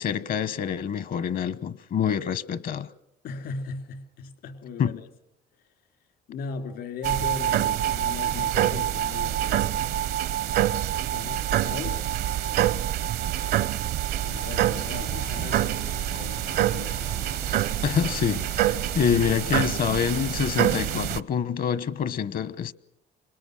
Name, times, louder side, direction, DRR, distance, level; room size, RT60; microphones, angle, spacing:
voice 1, 0.0-2.9 4.8-5.0 17.8-22.7, left 8 dB, 55° left, 1.1 m, -26 dB
voice 2, 3.2-5.0 6.3-10.0 11.1-12.5 13.2-13.7 14.2-17.0, left 4 dB, 70° left, 3.1 m, -38 dB
sound 1, 7.0-21.2, right 12 dB, 70° right, 0.8 m, -26 dB
sound 2, 14.2-21.0, left 5 dB, 90° left, 7.0 m, -43 dB
26.0 x 21.5 x 6.4 m
cardioid pair, 110°, 17 cm